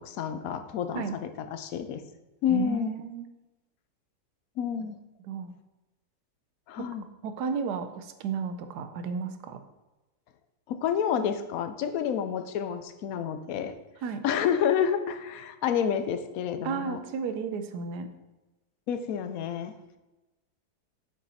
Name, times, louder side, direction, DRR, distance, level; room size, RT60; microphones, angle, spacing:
voice 1, 0.0-2.0 2.4-2.9 4.6-5.0 6.7-7.1 10.7-13.8 14.2-17.0 18.9-19.8, left 8 dB, 70° left, 9 dB, 1.0 m, -29 dB
voice 2, 2.5-3.3 5.2-5.5 6.8-6.9 7.2-9.6 14.0-14.2 16.6-18.1, right 6 dB, 85° right, 9 dB, 1.3 m, -33 dB
7.5 x 5.4 x 4.2 m, 1.1 s
omnidirectional pair, 1.7 m